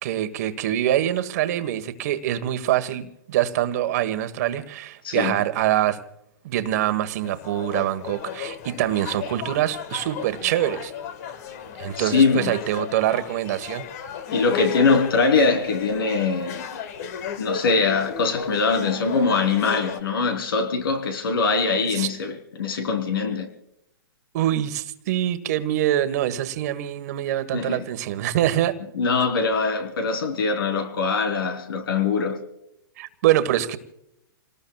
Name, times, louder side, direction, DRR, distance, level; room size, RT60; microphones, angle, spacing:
voice 1, 0.0-6.0 6.4-10.9 11.8-13.9 21.9-22.1 24.3-28.8 33.0-33.8, right 12 dB, 45° right, 1.4 m, -24 dB
voice 2, 5.0-5.4 12.0-12.5 14.3-16.7 17.4-23.5 27.5-27.9 28.9-32.4, left 4 dB, 80° left, 3.5 m, -22 dB
sound 1, 7.2-20.0, left 7 dB, 45° left, 1.6 m, -34 dB
29.0 x 19.0 x 2.3 m
hypercardioid pair, 155°, 12 cm